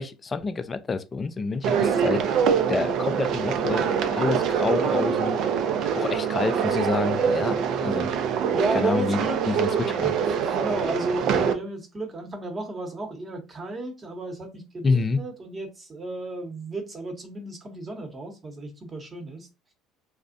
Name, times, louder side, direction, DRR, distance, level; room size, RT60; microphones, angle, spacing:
voice 1, 0.0-2.2 2.7-5.4 6.0-8.1 8.7-9.2 9.5-9.7 10.0-10.1 14.8-15.2, left 4 dB, 30° left, 0.3 m, -28 dB
sound 1, 1.6-11.5, right 7 dB, 60° right, 0.4 m, -24 dB
voice 2, 8.5-10.2 10.5-19.5, right 2 dB, 30° right, 0.9 m, -33 dB
2.4 x 2.1 x 2.5 m
hypercardioid pair, 70°, 0 cm